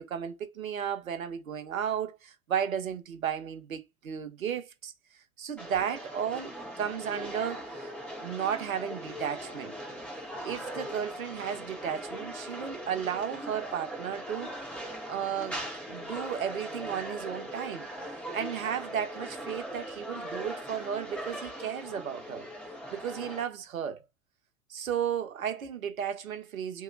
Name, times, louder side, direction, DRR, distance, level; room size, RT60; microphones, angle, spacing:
voice 1, 0.0-4.9 5.4-7.9 8.2-9.7 10.4-14.5 15.1-15.6 15.9-17.9 18.3-22.5 22.9-24.0 24.7-26.8, right 8 dB, 85° right, 0.7 m, -34 dB
sound 1, 5.6-23.4, equal, 5° left, 1.5 m, -40 dB
2.9 x 2.8 x 2.5 m
figure-of-eight pair, 95°, 40 cm